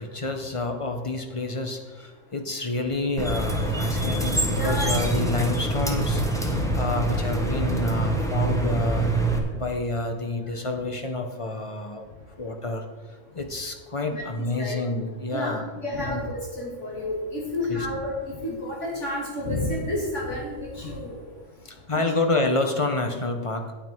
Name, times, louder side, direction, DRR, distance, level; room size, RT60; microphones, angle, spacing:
voice 1, 0.0-9.1 9.6-12.1 12.4-15.7 16.0-16.2 17.7-17.9 21.6-23.7, left 2 dB, 30° left, 5 dB, 0.8 m, -29 dB
sound 1, 3.2-9.4, right 2 dB, 5° left, 1.1 m, -25 dB
voice 2, 4.6-4.9 5.9-6.0 6.5-6.6 14.1-14.8 15.3-21.1 22.0-22.1, left 1 dB, 70° left, -5 dB, 2.8 m, -30 dB
9.2 x 9.1 x 4.5 m, 1.3 s
omnidirectional pair, 1.3 m